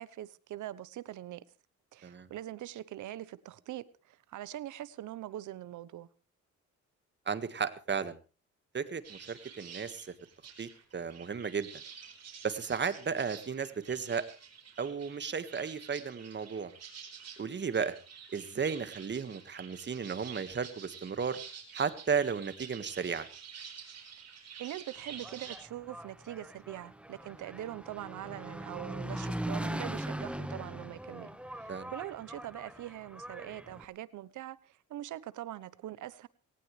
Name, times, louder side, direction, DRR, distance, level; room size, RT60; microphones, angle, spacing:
voice 1, 0.0-1.4 1.9-6.1 24.6-36.3, right 13 dB, 75° right, 1.0 m, -43 dB
voice 2, 7.3-8.2 8.7-10.1 10.6-11.7 12.4-14.3 14.8-16.7 17.4-18.0 18.3-21.4 21.7-23.3 31.7-31.9, right 6 dB, 35° right, 1.7 m, -34 dB
sound 1, 9.0-25.6, right 7 dB, 55° right, 4.9 m, -49 dB
Engine, 25.0-33.9, right 1 dB, 5° right, 1.5 m, -41 dB
19.0 x 18.5 x 3.3 m
cardioid pair, 90°, 30 cm